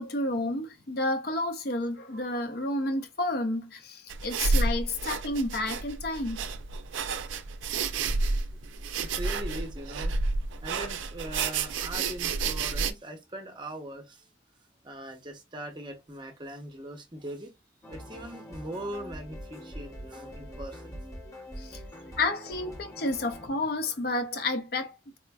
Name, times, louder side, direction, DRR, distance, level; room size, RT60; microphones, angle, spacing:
voice 1, 0.0-6.5 21.6-21.8 22.2-25.2, left 2 dB, 55° left, 0.5 m, -31 dB
sound 1, 4.1-12.9, right 3 dB, 85° right, 0.4 m, -30 dB
voice 2, 9.0-10.1 10.6-14.3 14.8-17.5 17.9-21.0 21.6-21.8, right 1 dB, 25° right, 0.7 m, -40 dB
sound 2, 17.8-23.5, equal, 15° left, 0.7 m, -43 dB
4.2 x 2.5 x 2.2 m
head